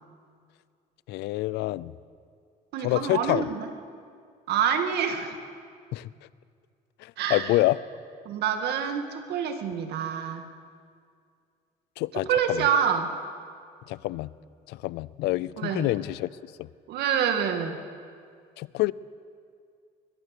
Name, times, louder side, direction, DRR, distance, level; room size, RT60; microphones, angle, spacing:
voice 1, 1.1-1.9 2.8-3.4 5.9-6.1 7.0-7.8 12.0-12.7 13.9-14.3 14.7-16.3 16.6-16.7 18.6-18.9, left 18 dB, 85° left, 20 dB, 0.6 m, -27 dB
voice 2, 2.7-3.7 4.5-5.4 7.2-7.5 8.3-10.4 12.3-13.1 15.6-15.9 16.9-17.8, right 7 dB, 75° right, 6 dB, 2.2 m, -27 dB
22.0 x 21.5 x 6.7 m, 2.2 s
cardioid pair, 110°, 17 cm